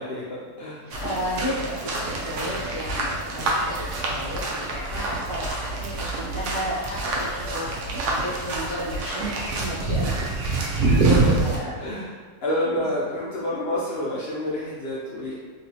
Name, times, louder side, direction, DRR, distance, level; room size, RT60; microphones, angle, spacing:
voice 1, 0.0-0.8 10.8-11.4 11.7-12.1 12.4-15.4, left 1 dB, 80° left, -7 dB, 0.5 m, -29 dB
voice 2, 0.9-10.1 11.4-11.7, equal, 25° left, -8 dB, 0.7 m, -33 dB
sound 1, 0.9-11.6, right 2 dB, 80° right, 1.2 m, -26 dB
3.0 x 2.9 x 2.8 m, 1.5 s
omnidirectional pair, 1.7 m